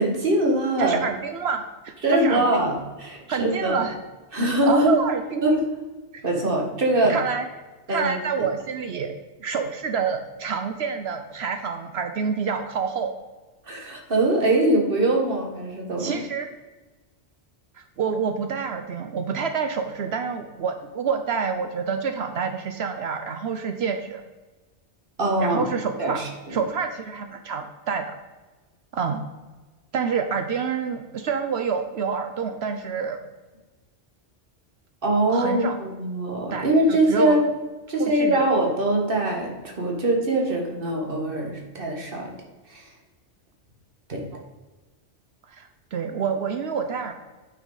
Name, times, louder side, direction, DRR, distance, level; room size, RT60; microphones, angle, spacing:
voice 1, 0.0-1.0 2.0-3.9 4.3-4.9 5.4-5.7 6.2-7.2 7.9-8.1 13.7-16.2 25.2-25.6 26.0-26.6 35.0-37.5 37.9-42.3 42.7-42.9 44.1-44.3, right 1 dB, 50° right, 0 dB, 1.8 m, -23 dB
voice 2, 0.8-2.4 3.3-4.0 4.7-5.4 6.1-6.2 7.1-7.5 7.9-9.1 9.4-13.1 16.0-16.5 18.0-24.2 25.4-26.2 26.5-28.1 28.9-29.2 29.9-33.2 35.3-35.8 36.5-37.4 38.0-38.5 44.3-44.4 45.5-47.1, right 6 dB, 70° right, 6 dB, 0.9 m, -27 dB
9.0 x 6.0 x 4.0 m, 1.2 s
omnidirectional pair, 1.2 m